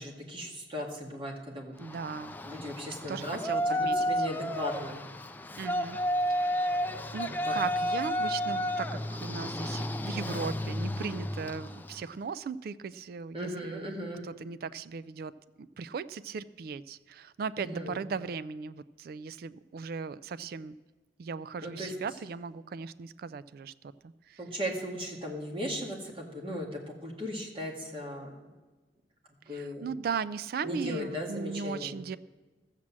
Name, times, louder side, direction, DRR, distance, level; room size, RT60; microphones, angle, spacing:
voice 1, 0.0-1.7 2.5-5.0 7.3-7.5 13.3-14.2 17.6-18.0 21.6-21.9 24.4-28.3 29.4-29.9 30.6-31.9, equal, 30° right, 1 dB, 2.0 m, -37 dB
Yell, 1.8-12.0, equal, 10° left, 0.5 m, -32 dB
voice 2, 1.8-2.4 3.1-4.3 5.6-6.0 6.3-13.9 14.2-15.3 15.6-20.8 21.2-23.7 24.0-24.4 29.5-32.2, right 5 dB, 55° right, 16 dB, 0.3 m, -38 dB
13.5 x 7.5 x 7.4 m, 1.2 s
head